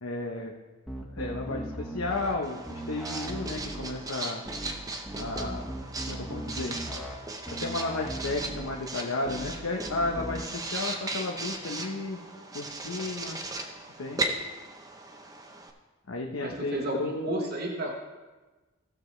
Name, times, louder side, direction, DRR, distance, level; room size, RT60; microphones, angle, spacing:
voice 1, 0.0-0.5 1.1-4.4 5.1-5.7 6.1-6.8 7.5-12.2 12.5-13.4 14.0-14.2 16.1-17.5, left 2 dB, 75° left, 0 dB, 0.9 m, -33 dB
sound 1, 0.9-2.4 2.7-3.9 4.5-4.7 5.1-7.2 7.5-8.7 9.3-9.5 9.9-10.4, right 1 dB, ahead, 1.2 m, -38 dB
Writing, 2.4-15.7, right 2 dB, 15° right, 0.7 m, -37 dB
voice 2, 16.4-18.0, right 1 dB, 45° right, 0 dB, 1.1 m, -32 dB
17.0 x 7.0 x 3.2 m, 1.2 s
head